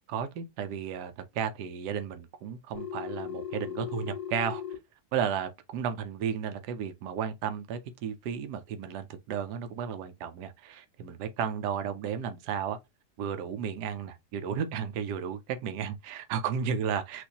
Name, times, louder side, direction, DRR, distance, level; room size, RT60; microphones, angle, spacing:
voice 1, 0.1-4.6 5.1-12.8 13.2-17.3, right 7 dB, 85° right, 1.3 m, -33 dB
Telephone, 2.7-4.7, left 9 dB, 60° left, 3.4 m, -37 dB
6.2 x 2.6 x 2.8 m
omnidirectional pair, 1.7 m